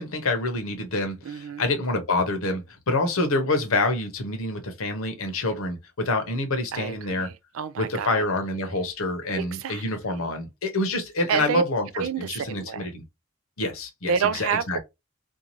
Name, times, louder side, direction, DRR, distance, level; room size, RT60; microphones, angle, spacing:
voice 1, 0.0-7.3 7.8-11.9 12.2-13.0 13.6-14.8, left 2 dB, 75° left, 0.8 m, -27 dB
voice 2, 1.2-1.6 6.7-8.2 9.4-9.8 11.3-11.6 11.9-12.9 14.1-14.8, right 7 dB, 70° right, 0.3 m, -28 dB
2.7 x 2.4 x 2.9 m
head